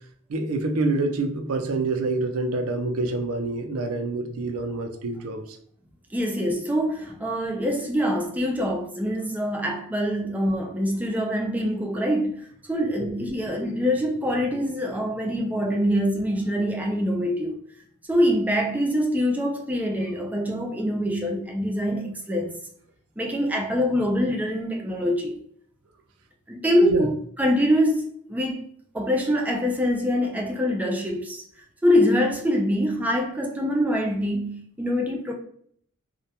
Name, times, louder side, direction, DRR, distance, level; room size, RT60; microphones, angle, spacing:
voice 1, 0.3-5.6 13.0-13.1 26.8-27.1, right 2 dB, 80° right, 0.4 m, -27 dB
voice 2, 6.1-17.5 18.1-22.5 23.2-25.4 26.5-28.7 28.9-31.4 31.8-35.3, equal, 5° right, 0.4 m, -24 dB
2.2 x 2.1 x 2.7 m
head